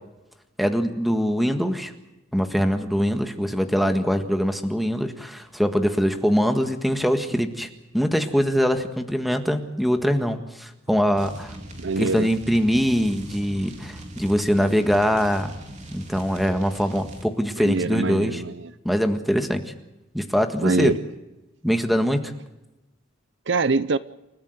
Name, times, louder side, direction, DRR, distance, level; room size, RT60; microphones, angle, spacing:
voice 1, 0.6-1.9 2.3-7.7 7.9-11.5 12.0-15.5 15.9-18.4 18.9-19.6 20.1-20.9 21.6-22.2, equal, ahead, 6 dB, 1.7 m, -23 dB
sound 1, 11.2-17.3, right 1 dB, 35° right, 3.4 m, -41 dB
voice 2, 11.8-12.3 17.6-18.7 20.6-21.0 23.5-24.0, right 3 dB, 60° right, 15 dB, 0.7 m, -24 dB
29.0 x 14.0 x 7.9 m, 1.0 s
head